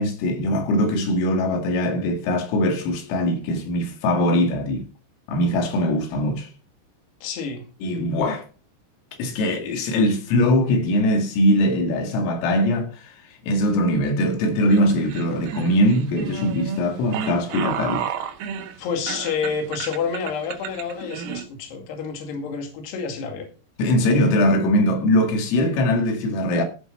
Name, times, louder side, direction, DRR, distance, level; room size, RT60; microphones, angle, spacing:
voice 1, 0.0-4.9 5.3-6.5 7.8-8.5 9.2-18.1 23.8-26.6, left 1 dB, 85° left, 4.8 m, -21 dB
voice 2, 7.2-7.6 18.8-23.5, left 6 dB, 60° left, 4.1 m, -29 dB
sound 1, 14.7-21.4, right 7 dB, 90° right, 4.0 m, -31 dB
15.5 x 6.0 x 5.4 m
omnidirectional pair, 5.8 m